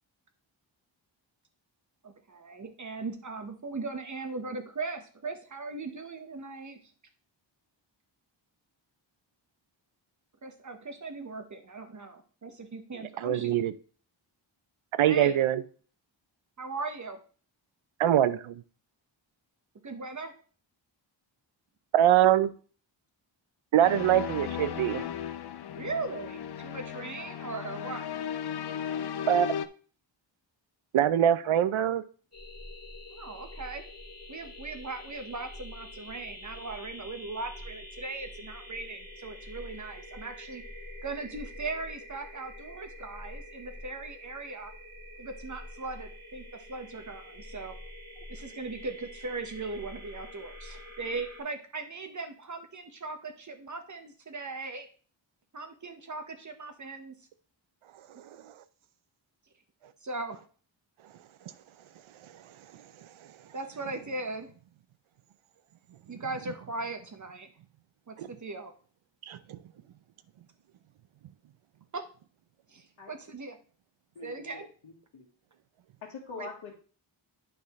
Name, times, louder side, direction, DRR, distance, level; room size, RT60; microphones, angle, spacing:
voice 1, 2.0-6.8 10.4-13.5 15.1-15.3 16.6-17.2 19.8-20.3 25.7-28.1 33.1-33.8 34.3-40.6 41.0-44.7 45.2-47.7 48.3-54.9 55.5-57.1 60.0-60.4 63.5-64.5 66.1-67.5 68.1-68.7 71.9-72.0 72.7-73.6 74.2-74.7 76.4-76.5, right 3 dB, 40° right, 6 dB, 1.2 m, -39 dB
voice 2, 13.2-13.7 15.0-15.6 18.0-18.6 21.9-22.5 23.7-25.0 29.3-29.5 30.9-32.0 68.2-68.3 69.3-69.6, right 11 dB, 85° right, 14 dB, 0.7 m, -23 dB
sound 1, 23.8-29.7, left 8 dB, 55° left, 0.6 m, -36 dB
sound 2, 32.3-51.4, left 1 dB, 30° left, 3.0 m, -46 dB
voice 3, 74.1-75.3 76.0-76.7, left 4 dB, 85° left, -3 dB, 1.5 m, -44 dB
9.4 x 5.5 x 3.2 m, 0.40 s
wide cardioid pair, 105°, 47 cm